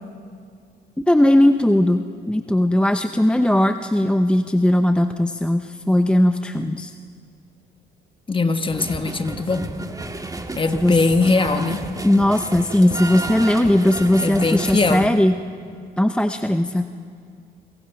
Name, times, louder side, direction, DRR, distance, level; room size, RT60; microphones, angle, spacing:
voice 1, 1.1-6.9 10.7-11.0 12.0-15.3 16.0-16.9, left 1 dB, 5° left, 8 dB, 0.7 m, -18 dB
voice 2, 8.3-9.7 10.6-11.9 14.2-15.1, left 3 dB, 25° left, 9 dB, 1.4 m, -21 dB
sound 1, 8.7-15.1, right 2 dB, 20° right, 1.7 m, -32 dB
28.5 x 23.5 x 5.8 m, 2.3 s
cardioid pair, 90°, 20 cm